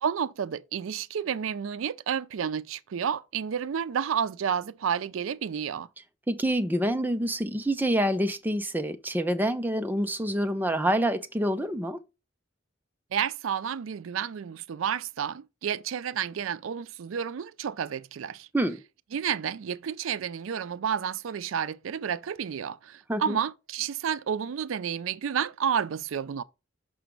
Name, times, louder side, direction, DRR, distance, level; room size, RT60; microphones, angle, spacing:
voice 1, 0.0-5.9 13.1-18.5 19.1-26.4, right 8 dB, 90° right, 0.4 m, -30 dB
voice 2, 6.3-12.0 18.5-18.8 23.1-23.4, right 1 dB, 10° right, 0.5 m, -27 dB
6.1 x 5.0 x 4.5 m
head